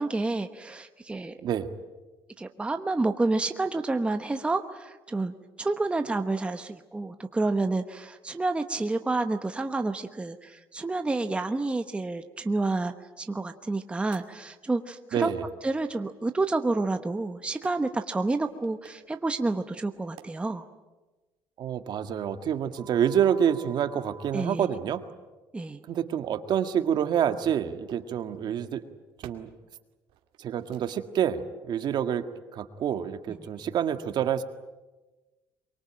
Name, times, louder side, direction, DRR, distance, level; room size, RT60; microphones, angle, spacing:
voice 1, 0.0-1.3 2.4-15.3 15.6-20.6 24.3-24.7 25.5-25.8, right 3 dB, 15° right, 7 dB, 1.1 m, -29 dB
sound 1, 14.1-14.2 16.5-16.6 17.6-17.7 18.5-18.9 19.9-20.2 22.8-24.3 26.7-26.8 27.9-28.1 29.2-29.3 30.1-30.4 30.6-30.9, right 8 dB, 90° right, 2.3 m, -47 dB
voice 2, 15.1-15.4 21.6-25.0 25.9-28.8 29.2-29.5 30.4-34.4, right 9 dB, 55° right, 8 dB, 1.8 m, -27 dB
24.0 x 23.5 x 8.9 m, 1.2 s
cardioid pair, 135°, 9 cm